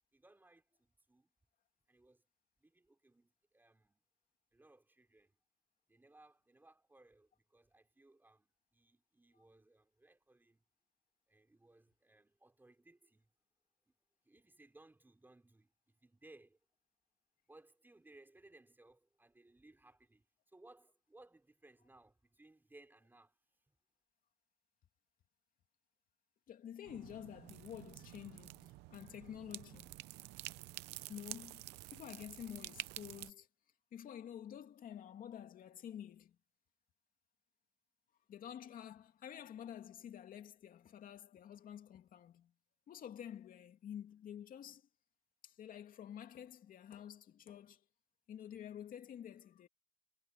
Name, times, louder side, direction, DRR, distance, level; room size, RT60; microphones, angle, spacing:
voice 1, 0.1-1.3 1.9-2.2 2.6-4.0 4.5-5.4 5.9-10.6 11.3-13.3 13.9-14.0 14.3-16.6 17.5-23.4, right 2 dB, 10° right, 5.4 m, -64 dB
voice 2, 26.5-30.0 31.1-33.5 33.9-36.4 38.3-42.5 42.9-44.9 45.4-47.8 48.3-49.7, left 9 dB, 55° left, 2.7 m, -50 dB
sound 1, 26.9-33.3, right 19 dB, 90° right, 0.7 m, -50 dB
cardioid pair, 110°, 17 cm